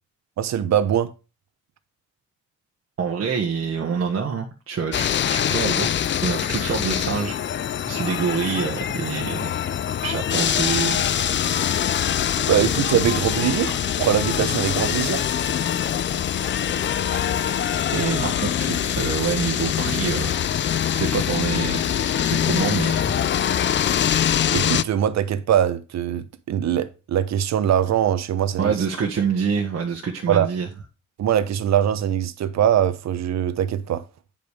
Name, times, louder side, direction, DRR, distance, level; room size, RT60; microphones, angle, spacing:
voice 1, 0.4-1.1 12.5-15.2 18.0-18.3 24.5-28.8 30.3-30.5 31.2-34.0, right 10 dB, 60° right, 1.0 m, -22 dB
voice 2, 3.0-5.9 6.2-11.0 17.9-20.3 20.6-21.8 22.3-23.2 28.6-30.7, right 6 dB, 45° right, 1.4 m, -26 dB
sound 1, 4.9-24.8, left 9 dB, 40° left, 0.5 m, -24 dB
sound 2, 9.4-15.2, left 9 dB, 60° left, 1.1 m, -38 dB
9.1 x 5.3 x 4.9 m
cardioid pair, 90°, 30 cm